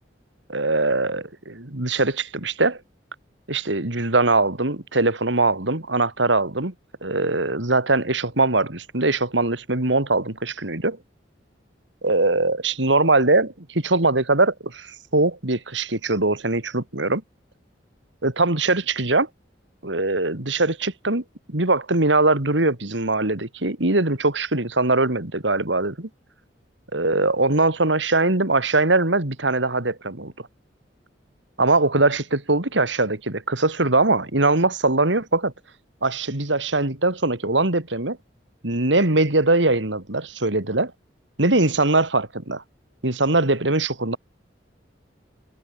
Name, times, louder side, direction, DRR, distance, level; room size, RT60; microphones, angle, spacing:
voice 1, 0.5-2.8 3.5-6.7 7.0-11.0 12.0-17.2 18.2-19.3 19.8-26.1 26.9-30.3 31.6-35.5 36.0-38.2 38.6-40.9 41.4-42.6 43.0-44.2, right 2 dB, 80° right, 3.0 m, -21 dB
head